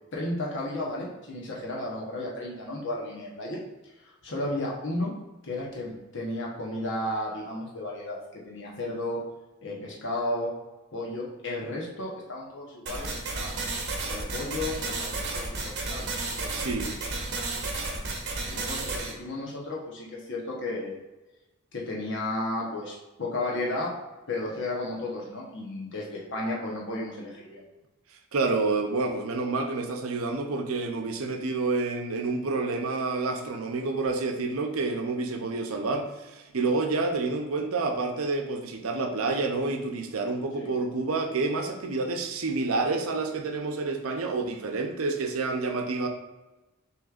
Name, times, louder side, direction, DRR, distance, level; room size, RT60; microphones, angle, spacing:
voice 1, 0.1-3.6 4.2-5.1 5.4-9.2 9.6-10.5 10.9-13.8 14.0-16.1 16.4-16.6 18.5-21.0 21.7-23.9 24.3-27.6 40.6-40.7, left 1 dB, 60° left, -3 dB, 1.0 m, -33 dB
sound 1, 12.9-19.1, right 3 dB, 55° right, 0.9 m, -32 dB
voice 2, 16.5-17.0 28.3-46.1, right 3 dB, 80° right, 4 dB, 0.6 m, -28 dB
6.2 x 3.2 x 2.4 m, 1.1 s
head